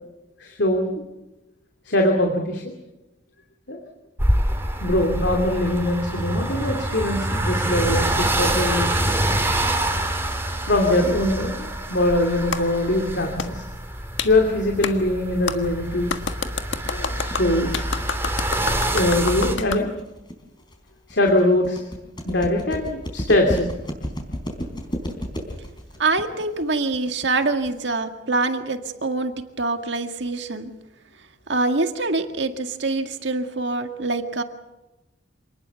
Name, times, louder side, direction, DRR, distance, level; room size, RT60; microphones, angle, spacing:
voice 1, 0.4-0.9 1.9-2.6 3.7-3.8 4.8-9.1 10.7-13.6 14.2-16.1 16.9-17.7 18.9-19.9 21.1-21.8 22.2-23.7, left 1 dB, 65° left, 2 dB, 2.8 m, -22 dB
sound 1, 4.2-19.6, right 1 dB, 15° right, 3.0 m, -26 dB
Clapping, 12.5-12.6 13.4-13.5 14.2-14.3 14.8-14.9 15.5-15.6 16.1-19.8, left 5 dB, 85° left, 1.5 m, -28 dB
sound 2, 15.8-27.8, equal, 25° left, 4.3 m, -33 dB
voice 2, 26.0-30.7 31.5-34.4, right 3 dB, 70° right, 6 dB, 2.0 m, -25 dB
27.0 x 19.5 x 7.0 m, 0.99 s
head